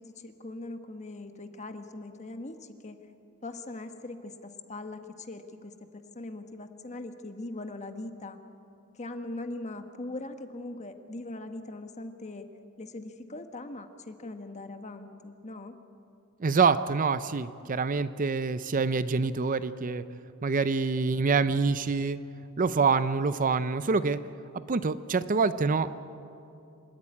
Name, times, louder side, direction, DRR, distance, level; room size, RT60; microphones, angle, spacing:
voice 1, 0.0-3.0 3.4-5.7 6.1-8.4 9.0-12.5 12.8-15.7, left 2 dB, 30° left, 7 dB, 1.3 m, -40 dB
voice 2, 16.4-20.0 20.4-22.2 22.6-24.2 24.7-26.1, right 4 dB, 40° right, 13 dB, 0.5 m, -26 dB
26.5 x 13.5 x 9.8 m, 2.7 s
head